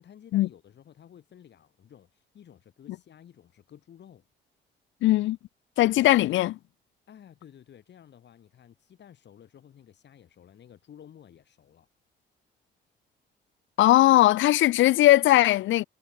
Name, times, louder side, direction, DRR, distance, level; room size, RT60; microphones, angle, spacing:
voice 1, 0.0-4.2 6.0-6.1 7.1-11.9, left 9 dB, 60° left, 5.3 m, -53 dB
voice 2, 5.0-5.4 5.8-6.6 13.8-15.8, left 15 dB, 75° left, 0.5 m, -19 dB
cardioid pair, 90°, 20 cm